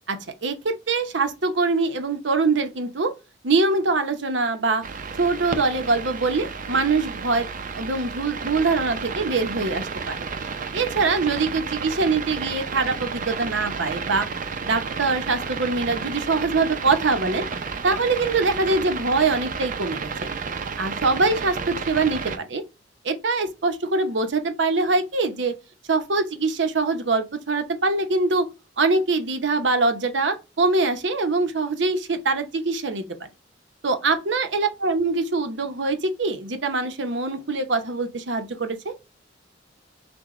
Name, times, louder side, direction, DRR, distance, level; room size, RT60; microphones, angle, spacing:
voice 1, 0.1-3.1 3.4-4.8 5.2-7.5 7.7-10.3 10.7-14.3 14.6-17.4 17.8-20.1 20.8-22.6 23.0-25.5 25.9-28.5 28.8-33.3 33.8-38.9, right 3 dB, 75° right, 0.8 m, -23 dB
sound 1, 4.8-22.4, right 5 dB, 45° right, 0.5 m, -32 dB
6.1 x 2.2 x 3.0 m
head